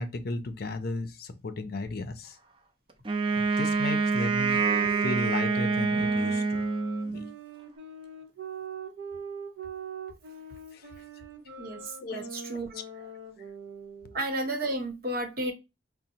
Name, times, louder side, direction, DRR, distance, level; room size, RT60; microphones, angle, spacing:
voice 1, 0.0-2.4 3.4-6.7 7.1-7.3 10.7-10.9 12.0-12.3 13.0-13.1, left 2 dB, 55° left, 0.5 m, -35 dB
Wind instrument woodwind instrument, 3.0-7.3, right 4 dB, 30° right, 0.5 m, -26 dB
sound 1, 4.6-14.3, right 4 dB, 85° right, 0.7 m, -42 dB
voice 2, 11.6-12.7 14.1-15.5, right 1 dB, 55° right, 1.0 m, -32 dB
5.1 x 2.1 x 2.8 m
head